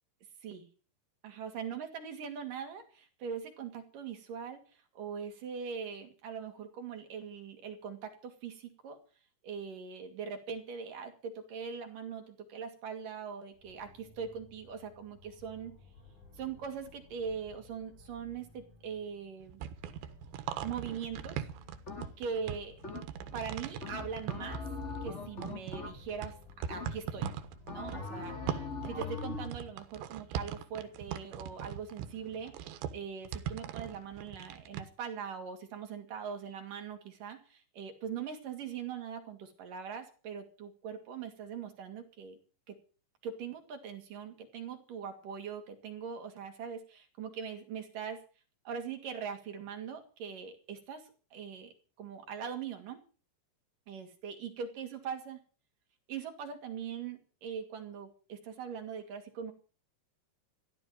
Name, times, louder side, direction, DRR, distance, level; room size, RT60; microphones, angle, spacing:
voice 1, 1.2-9.0 9.4-15.8 16.4-19.6 20.6-21.5 22.2-22.7 23.3-24.6 25.0-26.4 26.7-27.3 27.7-28.4 28.8-32.7 32.9-42.4 42.7-42.8 43.2-48.2 48.7-51.7 52.0-53.0 53.9-55.4 56.1-59.5, right 7 dB, 55° right, 5 dB, 3.7 m, -41 dB
sound 1, 13.5-29.2, left 3 dB, 50° left, 7.7 m, -57 dB
sound 2, 19.4-25.1 25.4-34.8, right 9 dB, 85° right, 3.5 m, -40 dB
sound 3, 21.9-22.4 22.8-23.4 23.8-26.3 26.7-27.2 27.7-29.6, left 4 dB, 20° left, 2.7 m, -41 dB
15.0 x 12.5 x 7.6 m, 0.38 s
omnidirectional pair, 5.1 m